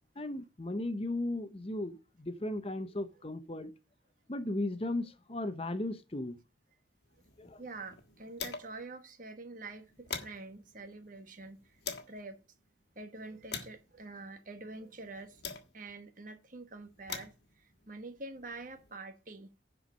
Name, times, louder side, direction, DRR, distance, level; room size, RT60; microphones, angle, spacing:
voice 1, 0.2-3.7 4.3-6.4 7.4-7.6, left 1 dB, 30° left, 0.8 m, -36 dB
sound 1, 7.1-8.9 9.2-9.3 9.7-12.2 12.8-16.0 16.7-18.9, left 6 dB, 55° left, 1.5 m, -45 dB
voice 2, 7.6-11.8 12.1-12.4 12.9-15.4 15.7-19.5, right 3 dB, 45° right, 1.3 m, -46 dB
10.5 x 4.7 x 6.2 m
head